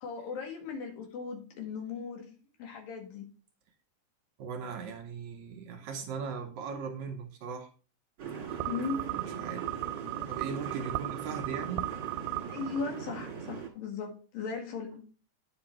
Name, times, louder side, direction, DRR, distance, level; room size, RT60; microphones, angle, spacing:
voice 1, 0.0-3.3 8.7-9.0 12.5-15.0, left 5 dB, 85° left, 3.6 m, -37 dB
voice 2, 4.4-7.7 8.5-8.6 9.2-9.7 10.2-11.9, right 5 dB, 70° right, 2.0 m, -39 dB
sound 1, 8.2-13.7, right 6 dB, 40° right, 2.0 m, -40 dB
sound 2, 8.5-13.2, right 17 dB, 90° right, 2.3 m, -37 dB
9.6 x 5.7 x 4.4 m
omnidirectional pair, 4.0 m